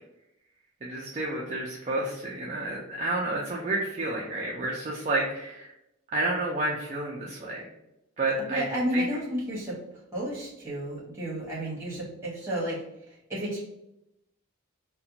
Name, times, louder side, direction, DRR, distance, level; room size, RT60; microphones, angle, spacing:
voice 1, 0.8-5.7 6.1-7.6 8.2-8.6 8.9-9.0, right 2 dB, 35° right, -3 dB, 0.3 m, -30 dB
voice 2, 8.5-9.8 10.1-12.8 13.1-13.6, equal, 10° right, -7 dB, 1.1 m, -31 dB
2.5 x 2.1 x 2.8 m, 0.86 s
head